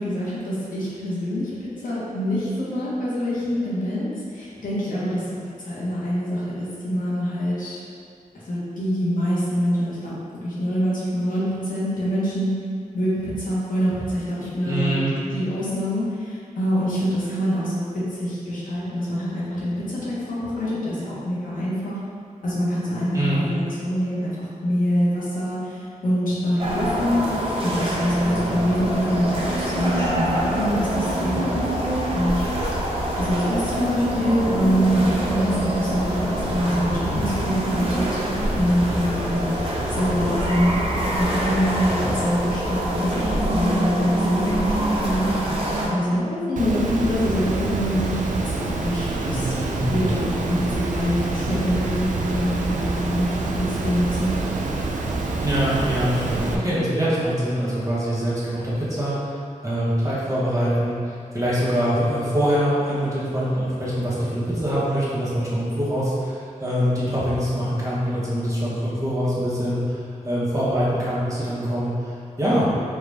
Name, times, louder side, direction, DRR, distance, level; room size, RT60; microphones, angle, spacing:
voice 1, 0.0-7.8 8.5-10.1 10.4-12.5 12.9-15.0 15.3-22.0 22.4-27.2 27.6-32.4 33.2-39.6 39.9-43.2 43.5-45.4 45.9-49.5 49.9-54.3, equal, 90° left, -9 dB, 1.1 m, -25 dB
voice 2, 14.7-15.1 23.1-23.4 49.2-50.1 55.4-59.3 59.6-70.0 70.2-72.1 72.4-72.7, equal, 25° right, -9 dB, 1.2 m, -24 dB
sound 1, 26.6-45.9, right 1 dB, 45° right, 0.8 m, -25 dB
Water, 46.6-56.6, right 3 dB, 70° right, 0.4 m, -27 dB
4.6 x 2.4 x 3.4 m, 2.4 s
wide cardioid pair, 90°, 14 cm